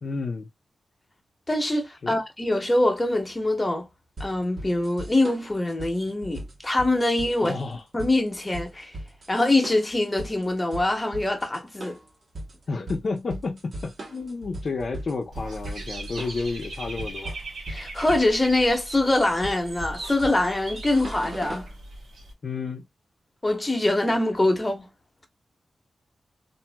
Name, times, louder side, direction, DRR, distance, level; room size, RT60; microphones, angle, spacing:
voice 1, 0.0-0.5 2.0-2.2 7.4-7.8 12.7-17.3 22.4-22.9, left 4 dB, 60° left, 0.6 m, -31 dB
voice 2, 1.5-3.9 4.2-7.6 7.9-8.9 9.3-12.0 17.7-21.7 23.4-24.9, left 2 dB, 20° left, 1.0 m, -24 dB
sound 1, 4.2-21.7, right 1 dB, 60° right, 1.2 m, -39 dB
Dog / Bird, 15.3-22.3, right 2 dB, 80° right, 0.9 m, -39 dB
2.8 x 2.6 x 2.2 m
wide cardioid pair, 85°, 0 cm